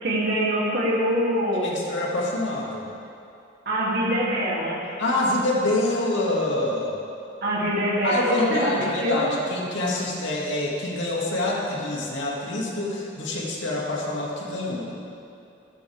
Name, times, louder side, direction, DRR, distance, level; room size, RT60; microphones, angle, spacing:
voice 1, 0.0-1.8 3.6-4.8 7.4-9.3, equal, 50° right, -6 dB, 3.0 m, -24 dB
voice 2, 1.6-2.9 5.0-7.0 8.0-14.9, left 2 dB, 70° left, -4 dB, 2.4 m, -26 dB
14.5 x 13.5 x 3.6 m, 2.6 s
head